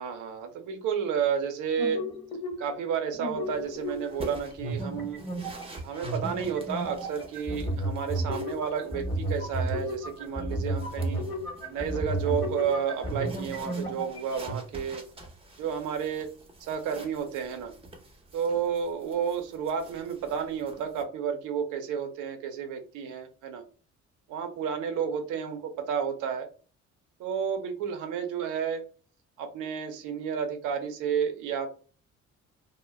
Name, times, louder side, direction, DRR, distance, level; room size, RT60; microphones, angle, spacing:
voice 1, 0.0-2.0 2.6-5.2 5.8-11.3 11.7-15.0 15.6-16.3 16.6-17.7 18.3-23.6 24.3-25.6 25.9-26.5 27.2-28.8 29.4-31.7, right 7 dB, 90° right, 5 dB, 0.6 m, -31 dB
sound 1, 1.8-2.9 3.1-4.3 4.6-14.6, right 1 dB, 15° left, 1.0 m, -33 dB
sound 2, 3.4-21.0, right 1 dB, 20° right, 0.6 m, -48 dB
2.1 x 2.0 x 3.2 m, 0.37 s
cardioid pair, 90°, 30 cm